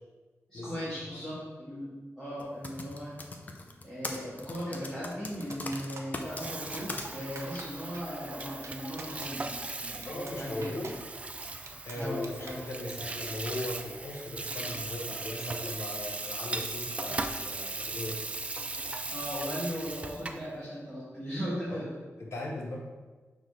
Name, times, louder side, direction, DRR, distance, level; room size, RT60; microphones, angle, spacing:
voice 1, 0.5-3.1 3.8-9.5 9.8-10.8 11.9-12.6 19.1-21.9, equal, 5° left, -11 dB, 1.8 m, -37 dB
Typing, 2.4-7.0 7.5-7.6, left 2 dB, 30° left, 0.6 m, -39 dB
sound 1, 5.5-6.2 6.8-7.1 7.3-7.6 7.9-8.0 8.4-8.7 9.0-9.3 9.7-9.8 10.0-10.3 10.6-10.9 11.4-12.6, right 4 dB, 65° right, 0.7 m, -45 dB
Water tap faucet / Sink (filling or washing), 6.2-20.5, right 3 dB, 25° right, 0.3 m, -38 dB
voice 2, 10.1-10.9 11.8-18.1 21.7-21.8 22.3-22.8, left 1 dB, 60° left, -1 dB, 1.2 m, -38 dB
6.4 x 3.9 x 4.7 m, 1.3 s
wide cardioid pair, 175°, 5 cm